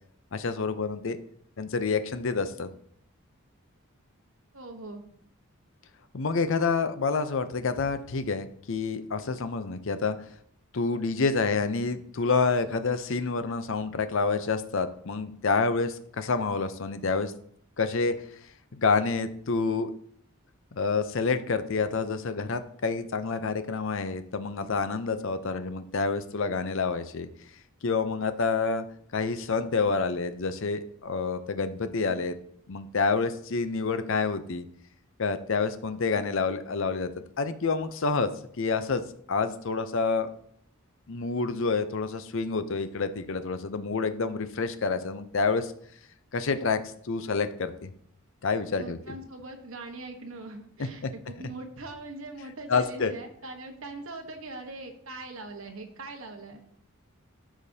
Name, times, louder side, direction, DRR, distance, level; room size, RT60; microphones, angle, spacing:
voice 1, 0.3-1.2 1.6-2.7 6.1-10.3 10.7-17.3 17.8-18.1 18.7-19.9 20.7-27.3 27.8-28.8 29.1-32.4 32.7-34.6 35.2-37.1 37.4-38.3 38.6-39.0 39.3-40.3 41.1-45.7 46.3-47.9 48.4-49.2 50.8-51.1 52.7-53.1, left 4 dB, 65° left, 11 dB, 0.6 m, -28 dB
voice 2, 4.5-5.0 48.8-56.7, right 2 dB, 70° right, 4 dB, 1.2 m, -41 dB
12.5 x 5.1 x 2.8 m, 0.65 s
head